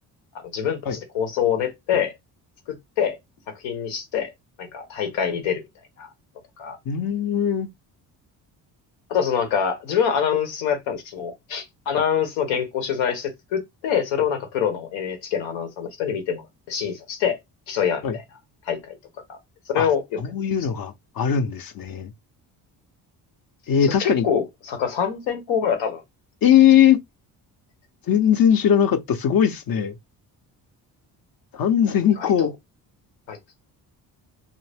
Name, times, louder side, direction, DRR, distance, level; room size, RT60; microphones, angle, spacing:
voice 1, 0.3-2.1 2.7-3.2 3.5-4.3 4.6-5.6 6.0-6.1 6.6-6.8 9.1-17.4 17.7-18.2 18.7-19.0 19.3-19.4 19.7-20.2 23.8-26.0 32.2-32.5 33.3-33.4, left 8 dB, 90° left, 1.0 m, -25 dB
voice 2, 6.9-7.7 18.0-18.2 19.7-19.9 20.2-22.1 23.7-24.3 26.4-27.0 28.1-30.0 31.5-32.5, left 9 dB, 50° left, 0.7 m, -19 dB
2.7 x 2.1 x 3.3 m
supercardioid pair, 70°, 44 cm